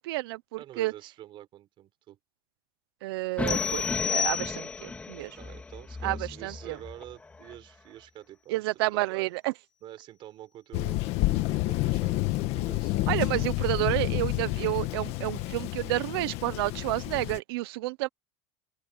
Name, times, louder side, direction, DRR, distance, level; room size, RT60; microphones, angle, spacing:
voice 1, 0.0-0.9 3.0-5.4 6.0-6.8 8.5-9.5 13.1-18.1, right 20 dB, 85° right, 1.0 m, -30 dB
voice 2, 0.6-2.2 5.4-9.3 9.8-13.0, right 13 dB, 40° right, 4.9 m, -47 dB
sound 1, 3.4-7.6, left 3 dB, 10° left, 3.3 m, -36 dB
sound 2, 3.5-5.0, left 8 dB, 35° left, 1.1 m, -30 dB
Thunder, 10.7-17.4, left 19 dB, 55° left, 1.6 m, -29 dB
open air
supercardioid pair, 140°, 12 cm